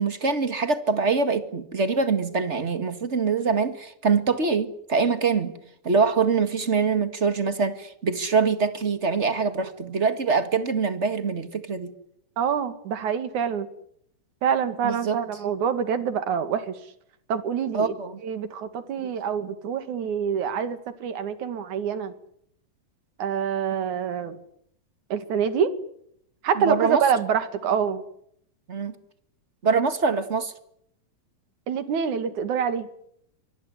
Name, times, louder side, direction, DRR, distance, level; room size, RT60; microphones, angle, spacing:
voice 1, 0.0-5.5 5.8-11.9 14.8-15.2 17.7-18.2 19.0-19.1 26.6-27.0 28.7-28.9 29.6-30.5, right 5 dB, 30° right, 1.2 m, -24 dB
voice 2, 12.4-13.7 14.4-16.8 17.3-17.9 18.2-22.1 23.2-24.4 25.1-25.7 26.4-28.0 31.7-32.9, right 7 dB, 60° right, 3.3 m, -26 dB
25.0 x 20.5 x 9.9 m
omnidirectional pair, 4.0 m